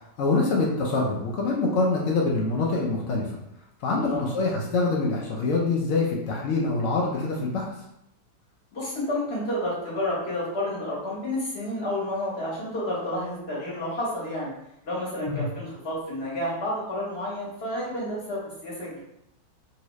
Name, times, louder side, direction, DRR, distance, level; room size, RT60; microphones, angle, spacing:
voice 1, 0.2-3.4 3.8-7.7 15.3-15.5, left 3 dB, 80° left, -2 dB, 0.7 m, -25 dB
voice 2, 3.9-4.2 8.7-14.5 14.8-19.0, left 1 dB, 40° left, -6 dB, 1.3 m, -30 dB
2.8 x 2.8 x 3.0 m, 0.81 s
omnidirectional pair, 1.9 m